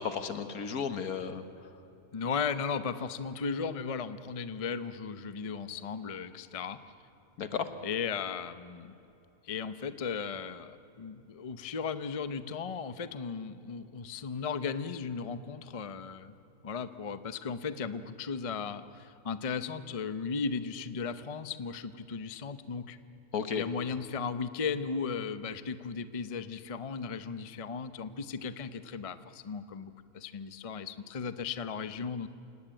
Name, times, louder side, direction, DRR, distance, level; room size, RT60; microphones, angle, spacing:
voice 1, 0.0-1.4 7.4-7.7 23.3-23.6, left 6 dB, 75° left, 10 dB, 1.8 m, -33 dB
voice 2, 2.1-6.8 7.8-8.9 9.4-16.3 16.6-23.0 23.6-32.3, left 5 dB, 35° left, 12 dB, 0.6 m, -36 dB
28.5 x 18.0 x 8.9 m, 2.7 s
omnidirectional pair, 1.6 m